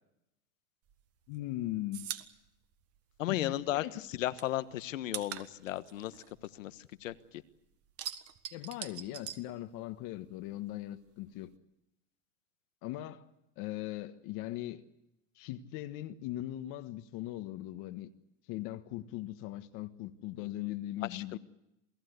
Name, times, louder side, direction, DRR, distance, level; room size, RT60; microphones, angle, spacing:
sound 1, 0.9-3.7 4.0-7.3 7.6-10.2 10.4-11.6, right 11 dB, 40° right, 1.7 m, -44 dB
voice 1, 1.3-2.1 3.3-4.0 8.5-11.5 12.8-13.3 13.6-14.8 15.3-18.1 18.5-21.4, left 15 dB, 55° left, 1.5 m, -39 dB
voice 2, 3.2-6.1 6.6-7.1 21.1-21.4, left 14 dB, 85° left, 1.4 m, -35 dB
28.5 x 18.5 x 8.1 m
supercardioid pair, 120°, 38 cm